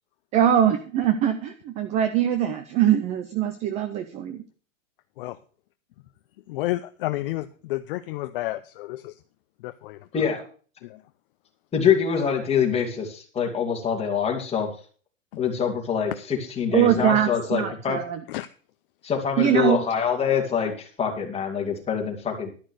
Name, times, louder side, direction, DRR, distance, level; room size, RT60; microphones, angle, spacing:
voice 1, 0.3-4.4 16.7-18.2 19.4-19.8, right 10 dB, 20° right, 11 dB, 0.4 m, -22 dB
voice 2, 6.5-9.2 9.6-10.1 10.8-11.0 15.3-15.4 18.3-18.5, left 17 dB, 45° left, 12 dB, 0.5 m, -31 dB
voice 3, 11.7-14.7 15.4-18.0 19.0-22.5, left 7 dB, 15° left, 0 dB, 2.6 m, -25 dB
12.0 x 6.1 x 6.5 m, 0.41 s
hypercardioid pair, 140°, 40 cm